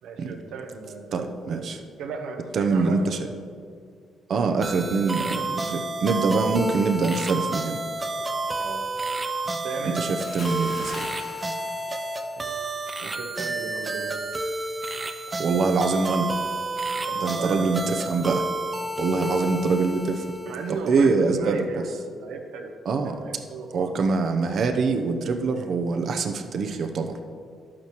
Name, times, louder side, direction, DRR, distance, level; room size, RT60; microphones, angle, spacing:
voice 1, 0.0-3.4 8.6-8.8 9.6-10.1 12.4-12.6 13.0-14.2 17.0-17.9 19.0-19.7 20.4-22.7 23.0-24.0, right 5 dB, 85° right, 3 dB, 1.0 m, -36 dB
voice 2, 1.1-1.8 2.5-3.2 4.3-7.8 10.0-11.1 15.4-16.3 17.2-18.5 19.0-20.3 20.9-21.6 22.9-23.2 23.7-27.2, right 4 dB, 60° right, 6 dB, 0.8 m, -24 dB
sound 1, 4.6-20.8, right 2 dB, 25° right, 0.6 m, -30 dB
Bathtub (filling or washing) / Splash splatter, 10.2-12.6 12.9-13.2, left 2 dB, 50° left, 1.8 m, -40 dB
11.5 x 8.7 x 3.1 m, 2.2 s
cardioid pair, 90°, 0 cm